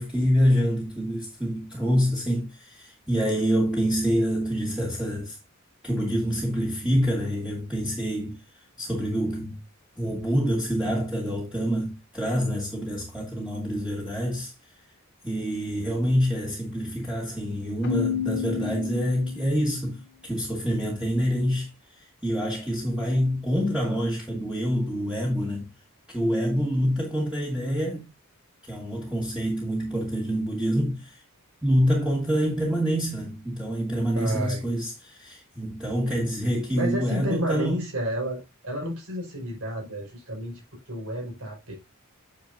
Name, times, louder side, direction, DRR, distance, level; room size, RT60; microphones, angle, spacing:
voice 1, 0.0-5.4 5.8-8.4 8.8-9.6 10.0-14.5 15.2-21.7 22.0-25.7 26.1-28.1 28.7-31.2 31.6-37.8, equal, 5° right, 2.0 m, -26 dB
Keyboard (musical), 17.8-19.7, left 8 dB, 50° left, 0.9 m, -30 dB
voice 2, 34.1-34.6 36.7-41.7, equal, 70° right, 5.7 m, -31 dB
9.5 x 6.6 x 2.7 m
head